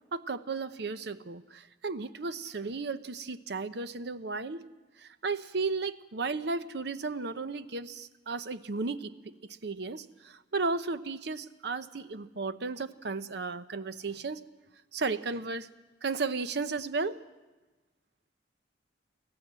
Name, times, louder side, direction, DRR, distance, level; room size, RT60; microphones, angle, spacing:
voice 1, 0.1-4.6 5.0-9.3 9.6-14.4 14.9-15.7 16.0-17.2, right 4 dB, 70° right, 12 dB, 0.8 m, -34 dB
24.5 x 16.0 x 7.6 m, 1.2 s
head